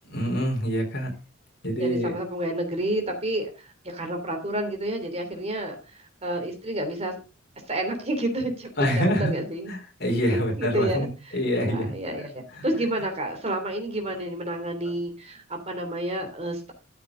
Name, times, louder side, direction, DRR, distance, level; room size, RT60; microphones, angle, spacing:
voice 1, 0.1-1.1 1.6-2.1 8.8-9.4 9.7-11.1 11.3-11.9 12.5-12.7 14.8-14.9, equal, 55° left, 2 dB, 4.3 m, -25 dB
voice 2, 1.8-7.1 7.6-9.7 10.3-11.1 11.5-16.7, right 1 dB, 30° right, 4 dB, 3.1 m, -30 dB
13.5 x 7.4 x 3.9 m, 0.31 s
head